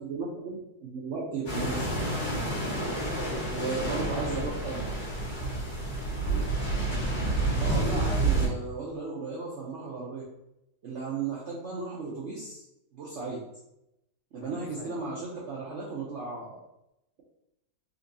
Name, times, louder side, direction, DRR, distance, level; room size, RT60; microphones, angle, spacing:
voice 1, 0.0-1.9 3.5-4.9 7.5-10.2 10.8-12.6 12.9-13.4 14.3-16.6, right 4 dB, 70° right, -5 dB, 0.6 m, -35 dB
sound 1, 1.5-8.5, right 2 dB, 55° left, 1.7 m, -29 dB
voice 2, 2.3-4.6 7.6-8.1 14.4-15.0, left 4 dB, 80° left, 3 dB, 1.2 m, -43 dB
4.0 x 2.6 x 2.6 m, 0.86 s
omnidirectional pair, 1.9 m